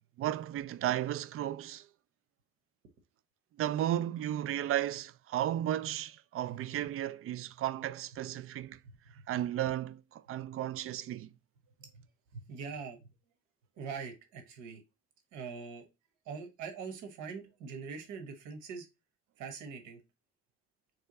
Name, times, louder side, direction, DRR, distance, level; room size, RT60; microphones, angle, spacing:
voice 1, 0.2-1.9 3.6-8.8 9.3-11.3, right 12 dB, 50° right, 0.4 m, -34 dB
voice 2, 12.3-13.0 13.8-14.8 15.3-15.8 16.3-18.9 19.4-20.0, right 5 dB, 90° right, 1.3 m, -43 dB
3.5 x 3.4 x 4.0 m
cardioid pair, 95°, 29 cm